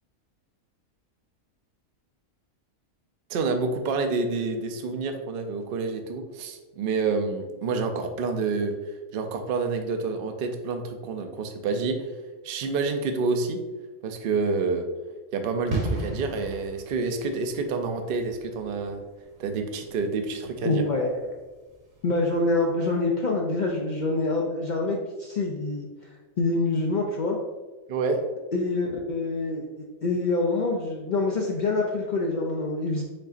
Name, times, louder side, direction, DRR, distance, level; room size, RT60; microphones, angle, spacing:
voice 1, 3.3-8.7 9.1-12.1 12.4-13.6 14.0-14.9 15.3-19.0 19.4-20.8 27.9-28.2, right 4 dB, 60° right, 6 dB, 0.5 m, -28 dB
sound 1, 15.7-22.2 22.5-22.6, right 1 dB, 35° right, 1.0 m, -36 dB
voice 2, 20.6-21.1 22.0-25.9 26.4-27.4 28.5-29.6 30.0-33.0, left 2 dB, 85° left, -1 dB, 0.4 m, -26 dB
5.5 x 3.8 x 2.5 m, 1.3 s
omnidirectional pair, 1.4 m